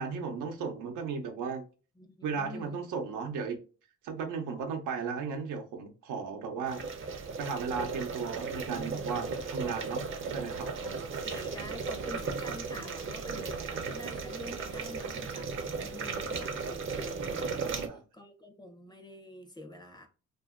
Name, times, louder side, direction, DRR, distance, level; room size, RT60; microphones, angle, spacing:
voice 1, 0.0-1.6 2.2-3.6 4.0-6.8 7.4-10.7 13.7-13.9 17.6-18.0, right 5 dB, 85° right, 0.7 m, -35 dB
voice 2, 2.0-2.8 10.8-20.1, left 1 dB, 15° left, 0.6 m, -47 dB
boiling pot, 6.7-17.9, right 4 dB, 40° right, 0.6 m, -36 dB
2.7 x 2.6 x 2.4 m
cardioid pair, 90°, 30 cm